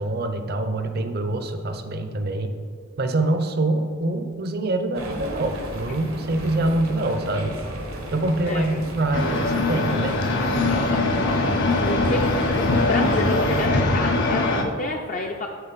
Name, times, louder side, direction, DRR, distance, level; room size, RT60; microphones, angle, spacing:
voice 1, 0.0-2.5 3.0-7.6 8.1-10.3, right 2 dB, 50° right, 7 dB, 0.5 m, -25 dB
sound 1, 4.9-13.7, right 1 dB, 85° right, 1.1 m, -35 dB
voice 2, 8.5-8.9 10.7-15.5, left 2 dB, 35° left, 1 dB, 0.4 m, -29 dB
sound 2, 9.1-14.6, left 2 dB, 60° left, 0.7 m, -22 dB
7.2 x 5.6 x 4.0 m, 2.3 s
head